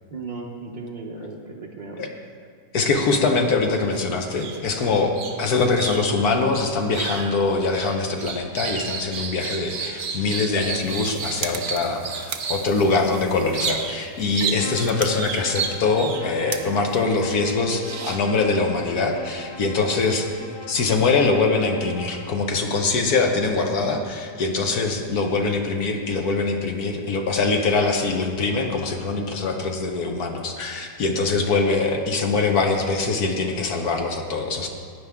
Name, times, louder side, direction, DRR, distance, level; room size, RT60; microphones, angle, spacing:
voice 1, 0.1-2.1, right 3 dB, 40° right, -3 dB, 0.6 m, -36 dB
voice 2, 2.7-20.3 20.7-34.7, left 3 dB, 65° left, 3 dB, 1.4 m, -23 dB
sound 1, 3.7-4.0 4.3-12.7 13.5-14.1 14.3-16.6 17.2-18.4, right 6 dB, 85° right, 0.4 m, -32 dB
sound 2, 10.6-17.9, right 7 dB, 60° right, 1.1 m, -39 dB
Bowed string instrument, 14.5-22.4, left 2 dB, 35° left, 0.4 m, -41 dB
15.5 x 9.6 x 3.6 m, 2.2 s
omnidirectional pair, 1.8 m